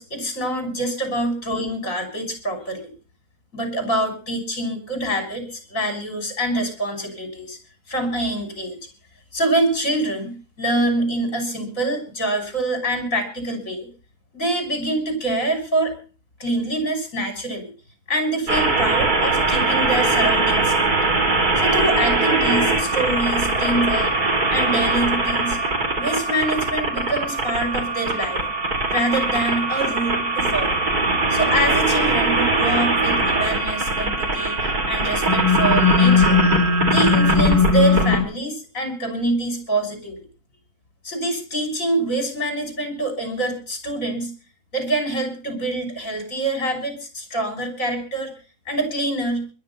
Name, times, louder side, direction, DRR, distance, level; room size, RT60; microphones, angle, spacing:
voice 1, 0.0-2.9 3.5-7.6 7.9-8.8 9.3-13.9 14.3-15.9 16.4-17.7 18.1-20.9 21.6-24.1 24.5-25.6 26.0-28.4 28.9-30.8 31.3-36.6 36.9-40.2 41.0-44.3 44.7-48.3 48.7-49.4, right 1 dB, 55° left, 7 dB, 6.7 m, -25 dB
sound 1, 18.5-38.2, right 1 dB, 75° right, 3.9 m, -20 dB
21.0 x 9.6 x 5.7 m, 0.37 s
omnidirectional pair, 1.6 m